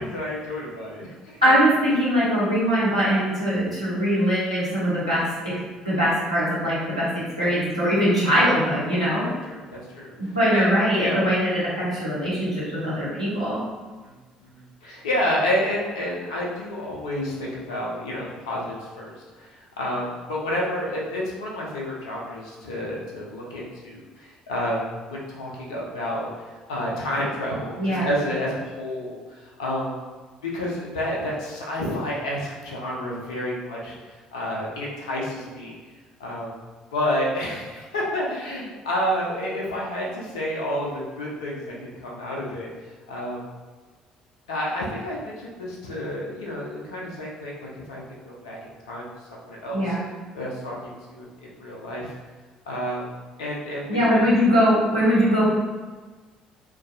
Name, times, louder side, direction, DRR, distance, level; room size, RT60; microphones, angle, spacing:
voice 1, 0.0-1.4 7.4-7.5 9.5-10.1 10.5-10.7 11.0-11.2 14.0-14.1 14.4-26.3 26.7-29.9 30.4-35.7 36.2-36.5 36.9-40.9 41.2-42.7 43.1-43.4 44.5-48.6 48.9-49.1 49.4-50.0 50.3-51.3 51.6-52.1 52.7-53.1 53.4-54.2, left 1 dB, 75° left, -4 dB, 0.4 m, -30 dB
voice 2, 1.4-5.6 5.8-9.3 10.2-13.6 27.8-28.1 49.7-50.1 53.9-55.5, equal, 90° right, -10 dB, 0.8 m, -21 dB
2.5 x 2.2 x 2.5 m, 1.3 s
figure-of-eight pair, 50°, 3 cm